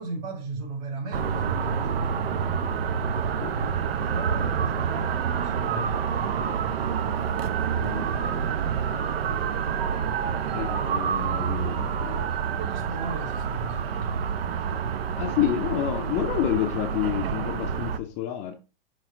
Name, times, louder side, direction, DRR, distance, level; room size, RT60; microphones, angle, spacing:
voice 1, 0.0-2.1 4.0-7.0 12.0-14.2, right 3 dB, 35° right, 3.3 m, -37 dB
sound 1, 1.1-18.0, right 7 dB, 80° right, 0.8 m, -28 dB
voice 2, 3.4-3.7 7.7-8.3 10.5-12.4 15.2-18.5, left 12 dB, 25° left, 0.5 m, -29 dB
6.2 x 3.2 x 5.8 m
hypercardioid pair, 150°, 29 cm